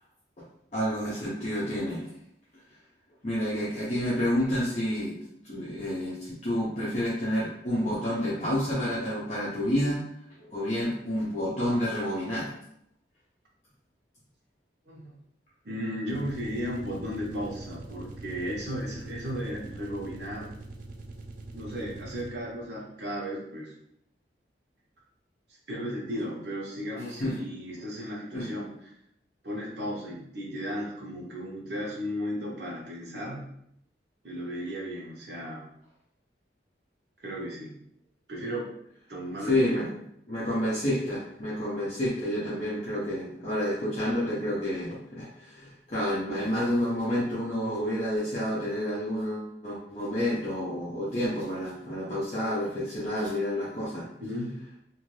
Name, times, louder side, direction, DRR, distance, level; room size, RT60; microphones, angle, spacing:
voice 1, 0.7-2.0 3.2-5.1 5.4-10.0 10.4-12.5 27.2-27.4 28.3-28.5 39.5-39.9 40.3-54.0, left 1 dB, 40° left, -8 dB, 0.6 m, -29 dB
voice 2, 14.9-15.2 15.6-20.5 21.5-23.7 25.7-28.7 29.4-33.5 34.2-35.7 37.2-37.7 38.3-38.7 39.1-39.9 54.0-54.5, equal, 70° right, -3 dB, 0.9 m, -35 dB
sound 1, 16.0-22.6, right 2 dB, 45° right, 0.3 m, -44 dB
2.5 x 2.5 x 3.1 m, 0.73 s
head